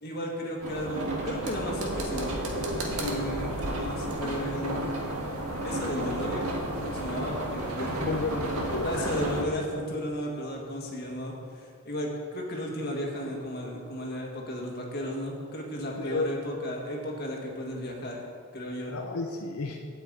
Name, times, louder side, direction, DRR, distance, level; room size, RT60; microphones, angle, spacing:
voice 1, 0.0-2.7 3.0-4.8 5.6-6.5 6.8-7.9 8.8-18.2 18.5-18.9, equal, 45° left, -1 dB, 1.8 m, -34 dB
sound 1, 0.6-9.4, right 1 dB, 85° right, 1.7 m, -32 dB
voice 2, 8.0-9.1 16.0-16.3 18.8-19.8, left 3 dB, 85° left, 2 dB, 0.7 m, -32 dB
9.0 x 5.8 x 8.2 m, 2.3 s
head